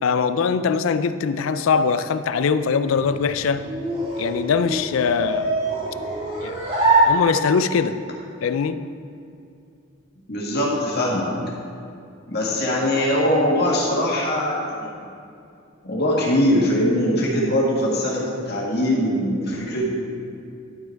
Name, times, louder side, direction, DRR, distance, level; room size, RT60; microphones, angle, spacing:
voice 1, 0.0-3.7 4.2-5.5 6.4-6.6 7.0-8.0 8.4-8.9, left 5 dB, 80° left, 11 dB, 0.4 m, -22 dB
sound 1, 2.9-7.8, right 2 dB, 30° right, 1.9 m, -24 dB
voice 2, 10.3-11.3 12.3-14.9 15.8-19.9, left 1 dB, 55° left, -4 dB, 1.9 m, -21 dB
11.5 x 5.8 x 4.5 m, 2.5 s
head